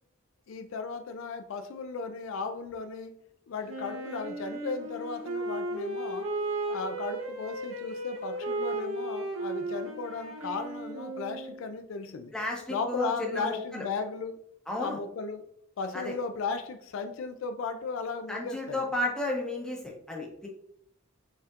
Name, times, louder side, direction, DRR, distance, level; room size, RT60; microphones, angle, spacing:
voice 1, 0.5-3.1 3.5-6.3 6.7-12.3 12.7-14.4 14.8-15.5 15.8-18.9, left 4 dB, 60° left, 8 dB, 0.3 m, -36 dB
Wind instrument woodwind instrument, 3.7-11.7, right 2 dB, 65° right, 0.9 m, -35 dB
voice 2, 12.3-13.8 14.7-15.0 15.9-16.1 18.3-20.5, left 2 dB, 5° left, -2 dB, 0.8 m, -33 dB
5.3 x 3.5 x 2.4 m, 0.71 s
head